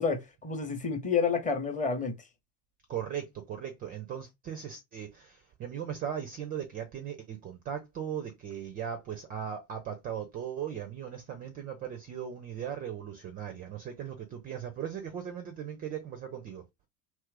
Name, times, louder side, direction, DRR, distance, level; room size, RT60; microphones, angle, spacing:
voice 1, 0.0-2.1, left 5 dB, 15° left, 0.7 m, -29 dB
voice 2, 2.9-16.6, right 9 dB, 20° right, 0.4 m, -38 dB
2.8 x 2.4 x 3.3 m
figure-of-eight pair, 75°, 50 cm